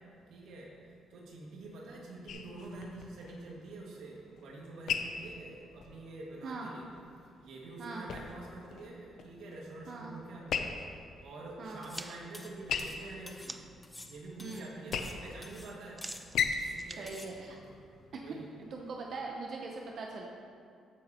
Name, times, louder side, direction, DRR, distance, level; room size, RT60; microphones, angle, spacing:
voice 1, 0.3-0.7 1.1-6.9 7.4-10.7 11.2-13.6 14.1-16.0 16.7-17.1 18.2-18.5, right 2 dB, 80° right, -3 dB, 2.0 m, -46 dB
sound 1, 2.3-18.3, left 6 dB, 70° left, 0.6 m, -40 dB
sound 2, 11.8-12.1 12.3-13.5 13.8-15.2 15.4-15.7 16.0-16.8 17.1-17.3, left 1 dB, 10° left, 0.9 m, -50 dB
sound 3, 11.9-13.9 14.3-14.7 15.0-18.2, right 2 dB, 15° right, 0.4 m, -48 dB
voice 2, 17.0-17.6 18.6-20.2, right 3 dB, 60° right, 0 dB, 0.8 m, -41 dB
14.5 x 6.7 x 3.0 m, 2.4 s
cardioid pair, 90°, 0 cm